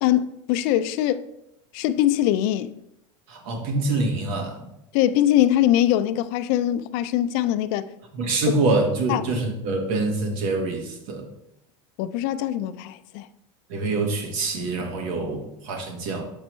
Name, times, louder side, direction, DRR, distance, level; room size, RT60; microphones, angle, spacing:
voice 1, 0.0-1.3 1.7-2.8 4.9-7.9 9.1-9.2 12.0-13.3, left 12 dB, 60° left, 0.4 m, -22 dB
voice 2, 3.3-4.7 8.1-11.3 13.7-16.3, right 3 dB, 75° right, 1.4 m, -25 dB
6.7 x 5.4 x 3.1 m
supercardioid pair, 135°, 17 cm